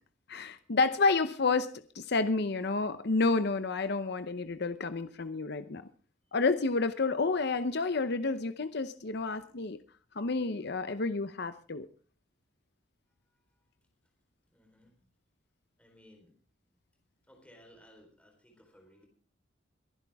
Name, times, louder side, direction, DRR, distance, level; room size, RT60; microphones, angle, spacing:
voice 1, 0.3-5.8 6.3-9.8 10.2-11.9, left 3 dB, 60° left, 11 dB, 0.8 m, -30 dB
voice 2, 14.5-14.9 15.8-16.3 17.3-19.1, equal, 5° left, 1 dB, 4.1 m, -59 dB
22.5 x 11.0 x 3.6 m, 0.40 s
head